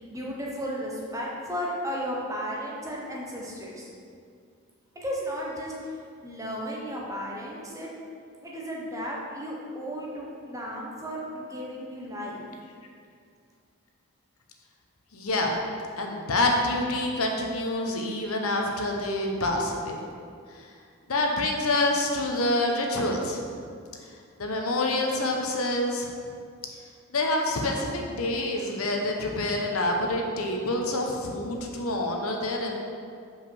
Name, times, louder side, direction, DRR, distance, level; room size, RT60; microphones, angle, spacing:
voice 1, 0.1-3.9 4.9-7.9 8.4-12.4, equal, 15° right, -4 dB, 1.0 m, -34 dB
voice 2, 15.1-15.6 16.0-20.0 21.1-23.4 24.4-26.1 27.1-32.8, left 2 dB, 80° left, 1 dB, 1.0 m, -27 dB
5.5 x 5.0 x 6.3 m, 2.3 s
head